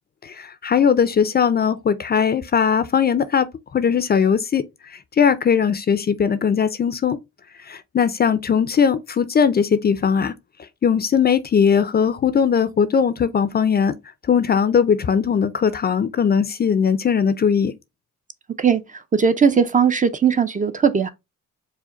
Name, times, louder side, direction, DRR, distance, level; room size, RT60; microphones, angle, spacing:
voice 1, 0.2-3.5 3.7-4.6 5.2-7.2 7.7-10.3 10.8-13.9 14.3-17.7, left 7 dB, 35° left, 0.4 m, -19 dB
voice 2, 19.1-21.1, right 6 dB, 25° right, 0.5 m, -18 dB
4.8 x 2.1 x 3.9 m
cardioid pair, 90°, 30 cm